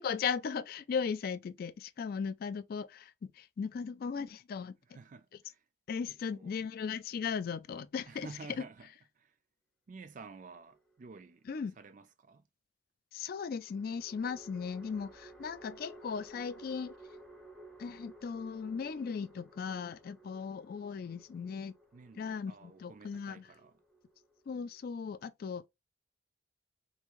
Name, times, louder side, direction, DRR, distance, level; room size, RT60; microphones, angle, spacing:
voice 1, 0.0-4.8 5.9-8.3 11.5-11.7 13.1-17.0 17.8-21.7 22.2-23.4 24.5-25.7, left 6 dB, 60° left, 0.3 m, -37 dB
voice 2, 4.9-5.6 6.1-6.5 8.1-8.9 9.1-9.4 9.9-11.5 11.8-12.5 21.9-23.8, right 4 dB, 45° right, 0.4 m, -51 dB
sound 1, 10.5-11.3 13.6-25.0, right 1 dB, ahead, 0.7 m, -56 dB
3.6 x 2.6 x 3.0 m
head